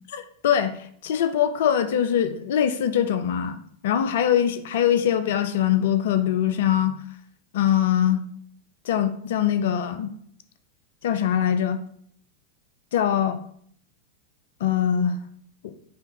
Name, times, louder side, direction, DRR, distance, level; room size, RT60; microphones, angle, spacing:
voice 1, 0.1-7.0 7.5-8.2 8.9-10.1 11.0-11.8 12.9-13.4 14.6-15.2 15.6-15.7, left 9 dB, 55° left, 10 dB, 0.4 m, -23 dB
5.5 x 2.7 x 2.9 m, 0.62 s
figure-of-eight pair, 90°, 0 cm